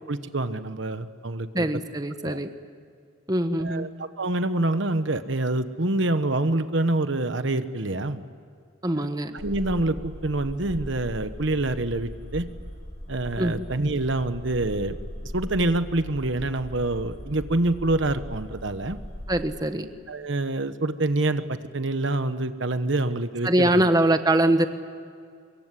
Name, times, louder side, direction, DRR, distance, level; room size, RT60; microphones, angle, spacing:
voice 1, 0.0-1.7 2.2-2.4 3.6-8.2 8.9-9.1 9.3-12.5 13.1-15.0 15.3-19.0 20.1-23.9, right 2 dB, 65° right, 11 dB, 1.2 m, -26 dB
voice 2, 1.5-2.5 3.3-3.9 8.8-9.3 13.4-13.6 19.3-19.9 23.4-24.7, right 1 dB, 20° right, 8 dB, 1.2 m, -23 dB
sound 1, 9.4-19.4, equal, 35° left, 5.0 m, -39 dB
25.0 x 23.0 x 9.9 m, 2.3 s
head